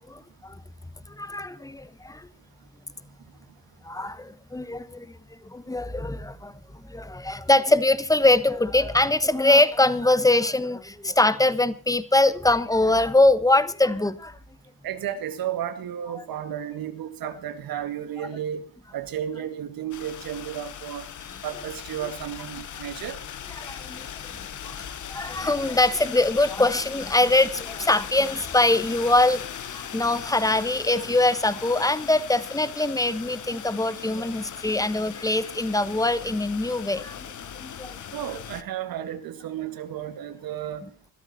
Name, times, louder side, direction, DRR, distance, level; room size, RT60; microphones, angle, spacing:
voice 1, 0.1-0.6 1.1-2.3 3.8-5.2 5.4-6.5 6.9-14.4 23.6-24.1 24.3-24.8 25.1-37.3 37.6-38.0, left 2 dB, 10° left, 1.3 m, -23 dB
voice 2, 14.8-18.6 18.9-21.1 21.4-23.2 38.1-40.9, right 10 dB, 85° right, 2.1 m, -33 dB
sound 1, 19.9-38.6, left 9 dB, 60° left, 1.4 m, -38 dB
21.5 x 13.0 x 4.3 m
cardioid pair, 95°, 34 cm